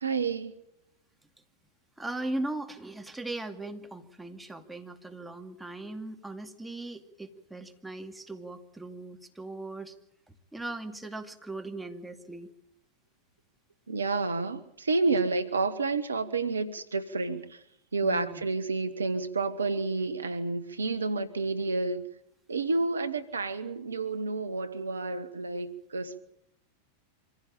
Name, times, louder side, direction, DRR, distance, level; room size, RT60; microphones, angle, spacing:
voice 1, 0.0-0.5 13.9-17.4 17.9-22.0 22.5-25.7 25.9-26.2, right 3 dB, 80° right, 11 dB, 1.4 m, -29 dB
voice 2, 2.0-9.9 10.5-12.5 18.0-18.5, right 2 dB, 5° right, 4 dB, 2.4 m, -39 dB
25.5 x 15.5 x 8.9 m, 0.81 s
figure-of-eight pair, 90°, 0 cm